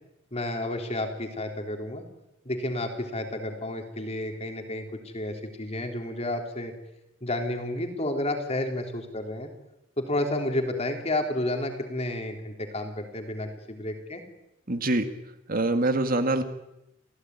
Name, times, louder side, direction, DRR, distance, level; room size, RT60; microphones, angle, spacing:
voice 1, 0.3-2.0 2.5-6.7 7.2-9.5 10.0-14.2, left 1 dB, 30° left, 4 dB, 3.7 m, -31 dB
voice 2, 14.7-15.1 15.5-16.4, right 2 dB, 45° right, 8 dB, 1.9 m, -24 dB
28.5 x 16.0 x 9.6 m, 0.91 s
head